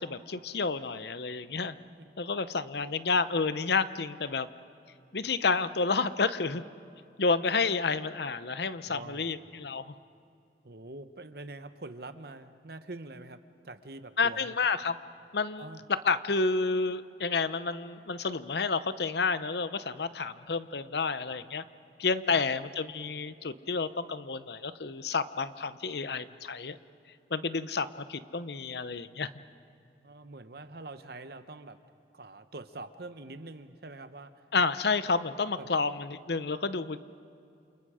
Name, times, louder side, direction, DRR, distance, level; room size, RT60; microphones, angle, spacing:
voice 1, 0.0-1.8 2.2-4.5 5.1-6.6 7.2-9.9 14.2-14.9 15.3-15.7 16.0-21.6 22.0-26.8 27.3-29.3 34.5-37.0, left 4 dB, 60° left, 13 dB, 0.8 m, -30 dB
voice 2, 8.9-9.5 10.6-14.5 15.6-15.8 22.3-22.4 30.0-31.8 32.1-34.3 35.6-35.7, right 2 dB, 55° right, 10 dB, 1.0 m, -45 dB
29.0 x 28.5 x 5.0 m, 2.6 s
head